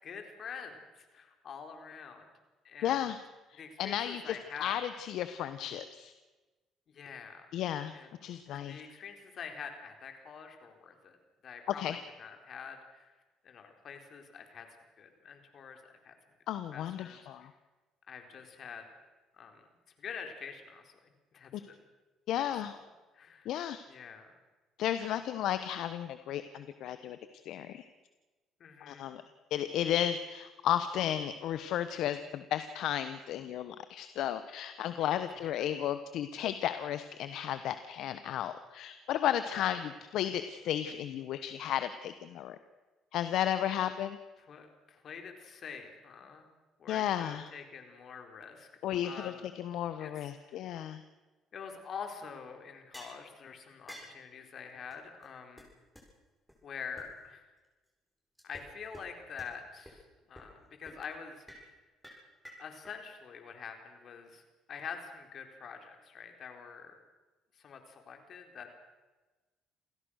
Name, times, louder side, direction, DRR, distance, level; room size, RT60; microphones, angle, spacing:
voice 1, 0.0-2.3 2.6-3.1 3.5-4.8 6.9-7.5 7.9-8.2 8.5-11.2 11.4-13.1 13.4-14.7 15.0-16.1 16.7-17.5 18.1-18.9 19.3-19.7 20.0-21.8 22.4-22.8 23.1-23.5 23.9-24.3 25.0-25.1 28.6-29.1 35.3-35.6 39.5-39.7 44.4-46.5 46.8-48.7 49.0-49.5 50.0-51.0 51.5-55.7 56.6-57.5 58.4-61.7 62.6-64.4 64.7-67.0 67.5-68.7, left 6 dB, 55° left, 5 dB, 4.3 m, -46 dB
voice 2, 2.8-3.2 3.5-6.1 7.5-7.9 8.2-8.8 11.8-12.0 16.5-17.5 22.3-22.7 23.4-23.8 24.8-27.2 27.4-27.8 28.8-29.2 29.5-39.8 40.1-42.6 43.1-44.2 46.9-47.4 48.8-51.0, left 11 dB, 70° left, 11 dB, 1.1 m, -33 dB
sound 1, 52.9-53.2 53.9-54.2 54.9-55.0 55.2-55.3 55.6-55.7 55.9-56.0 56.5-56.6 57.0-57.1 58.4-58.7 58.9-59.0 59.4-59.5 59.8-59.9 60.3-60.6 60.9-61.0 61.5-61.7 62.0-62.9, equal, ahead, 7.9 m, -50 dB
28.0 x 16.5 x 6.5 m, 1.2 s
supercardioid pair, 85°, 0 cm